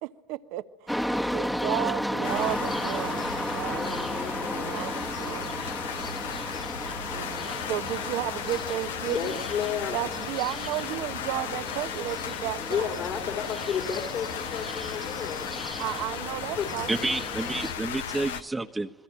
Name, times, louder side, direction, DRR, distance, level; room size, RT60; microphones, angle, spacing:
voice 1, 0.0-4.0 4.5-5.6 7.1-9.4 9.9-13.0 15.8-16.9, right 15 dB, 70° right, 1.2 m, -33 dB
sound 1, 0.9-17.7, equal, 5° left, 1.4 m, -34 dB
sound 2, 2.2-18.4, left 8 dB, 85° left, 1.2 m, -36 dB
voice 2, 3.4-4.8 8.9-10.0 12.6-15.5 16.6-16.7, left 8 dB, 50° left, 3.3 m, -33 dB
voice 3, 16.9-18.9, right 2 dB, 15° right, 1.3 m, -29 dB
28.0 x 21.5 x 9.0 m
hypercardioid pair, 75°, 0 cm